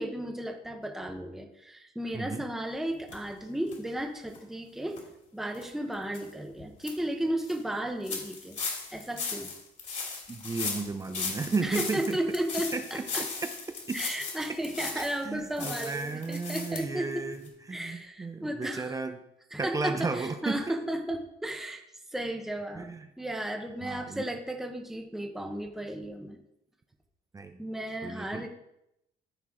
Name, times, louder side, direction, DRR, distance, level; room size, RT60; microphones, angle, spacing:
voice 1, 0.0-5.0 5.3-8.6 8.9-9.5 11.6-13.3 13.9-17.3 17.7-19.0 19.5-21.8 22.1-22.9 23.2-26.4 27.6-28.5, right 1 dB, ahead, 3 dB, 1.0 m, -34 dB
sound 1, 3.1-3.2 3.7-3.8 4.3-4.4 4.9-5.0 5.5-5.7 6.1-6.2 6.6-6.9 7.4-7.5 8.0-15.2 15.6-16.8 17.1-17.2 17.4-17.5, left 4 dB, 45° left, 2.7 m, -37 dB
voice 2, 10.3-12.2 12.7-13.0 13.4-13.5 13.9-14.2 14.9-17.4 17.7-19.2 19.6-20.7 22.7-23.1 23.8-24.3 27.3-27.6 28.0-28.5, right 4 dB, 20° right, 7 dB, 0.6 m, -34 dB
13.0 x 4.6 x 3.7 m, 0.81 s
cardioid pair, 110°, 17 cm